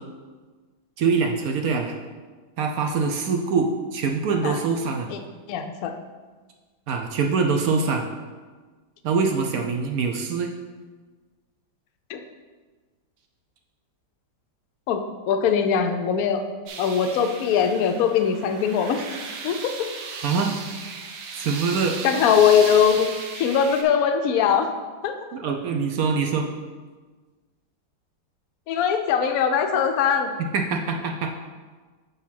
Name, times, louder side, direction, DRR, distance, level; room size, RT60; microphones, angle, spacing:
voice 1, 1.0-1.9 2.6-5.1 6.9-8.1 9.0-10.5 20.2-20.6 21.4-22.0 25.3-26.5 30.4-31.3, right 5 dB, 70° right, 3 dB, 0.8 m, -24 dB
voice 2, 5.5-5.9 12.1-12.2 14.9-15.0 15.3-16.4 16.8-19.0 19.4-19.7 22.0-24.7 25.0-25.4 28.7-30.4, left 7 dB, 70° left, 6 dB, 0.8 m, -21 dB
sound 1, 16.7-23.8, right 5 dB, 90° right, 1.6 m, -36 dB
6.5 x 4.1 x 5.7 m, 1.4 s
omnidirectional pair, 2.1 m